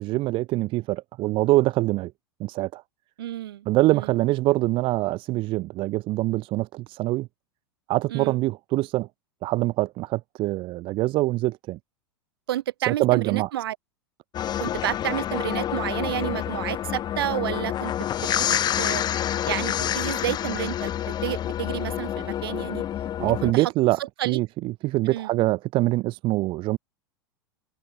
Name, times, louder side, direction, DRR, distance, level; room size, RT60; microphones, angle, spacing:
voice 1, 0.0-2.1 2.4-2.8 3.6-7.3 7.9-9.1 9.4-11.8 12.9-13.5 23.2-24.0 24.2-26.8, right 18 dB, 40° right, 1.3 m, -24 dB
voice 2, 3.2-3.7 3.9-4.1 8.1-8.4 12.5-13.8 14.6-18.1 18.4-19.0 19.4-20.9 21.2-22.8 23.4-23.7 24.0-24.4 25.1-25.3, right 13 dB, 65° right, 4.6 m, -30 dB
sound 1, 14.3-23.5, left 11 dB, 30° left, 2.8 m, -28 dB
open air
figure-of-eight pair, 90°, 13 cm